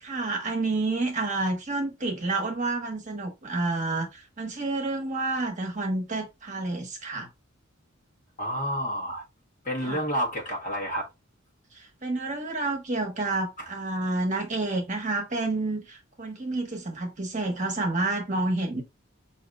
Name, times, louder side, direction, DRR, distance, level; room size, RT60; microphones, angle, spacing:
voice 1, 0.0-7.3 9.8-10.0 11.7-18.8, right 2 dB, 35° right, 1.0 m, -29 dB
voice 2, 8.4-9.2 9.6-11.1, equal, 40° left, 1.2 m, -29 dB
5.7 x 2.7 x 2.4 m
head